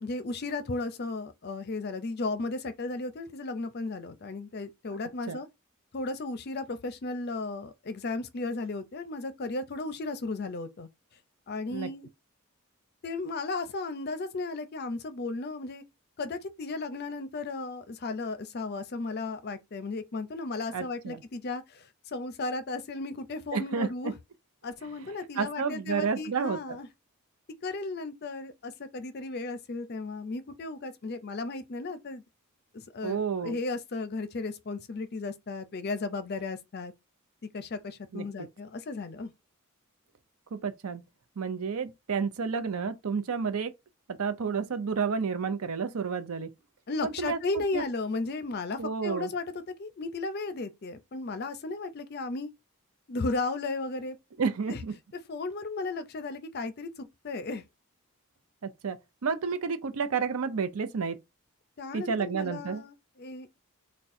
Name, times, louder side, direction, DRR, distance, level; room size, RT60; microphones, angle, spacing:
voice 1, 0.0-5.5 5.9-10.9 11.5-12.1 13.0-15.8 16.2-24.1 24.6-26.9 27.6-32.2 32.7-36.9 37.5-39.3 46.9-49.4 49.8-52.5 53.1-54.2 54.7-54.8 55.3-57.6 61.8-63.6, left 3 dB, 45° left, 0.5 m, -35 dB
voice 2, 20.7-21.2 23.5-24.1 25.4-26.6 33.0-33.6 38.1-38.3 40.5-41.0 41.4-43.7 44.1-46.5 47.0-47.4 47.7-47.8 48.8-49.3 54.4-54.9 58.6-59.0 59.2-61.2 61.9-62.8, right 5 dB, 80° right, 0.6 m, -30 dB
3.6 x 2.2 x 4.1 m
head